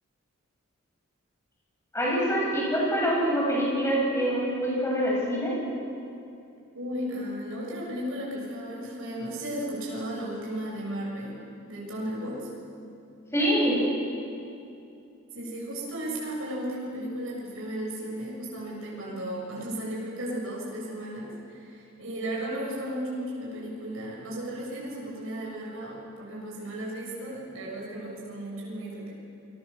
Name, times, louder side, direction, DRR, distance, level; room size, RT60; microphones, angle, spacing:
voice 1, 1.9-5.5 13.3-13.8, equal, 15° left, -4 dB, 7.8 m, -25 dB
voice 2, 6.7-11.4 11.7-12.5 15.3-29.1, right 1 dB, 85° right, -4 dB, 7.4 m, -35 dB
28.5 x 22.0 x 7.2 m, 2.6 s
head